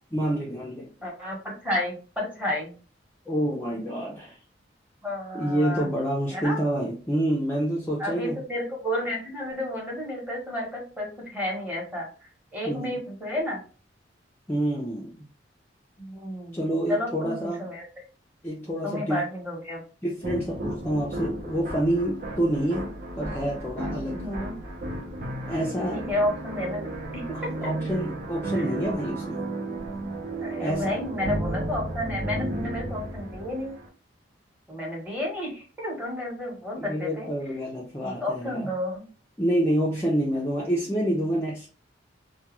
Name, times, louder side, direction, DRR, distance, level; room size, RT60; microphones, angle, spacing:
voice 1, 0.1-0.9 3.3-4.4 5.3-8.4 12.6-13.0 14.5-15.3 16.5-17.7 18.4-19.2 20.0-22.9 23.2-24.3 25.5-26.0 27.3-29.4 30.6-31.0 36.8-38.7 39.4-41.7, right 1 dB, 10° left, -4 dB, 0.4 m, -27 dB
voice 2, 1.0-2.7 5.0-5.9 6.3-6.6 8.0-12.1 12.5-13.6 16.0-16.6 16.9-17.8 18.8-19.8 24.2-24.6 25.9-27.2 28.5-28.6 30.4-33.7 34.7-37.3 38.0-39.1, left 1 dB, 10° right, -2 dB, 0.9 m, -31 dB
sound 1, 20.2-33.9, right 1 dB, 50° right, 0.6 m, -33 dB
2.3 x 2.2 x 2.9 m, 0.36 s
head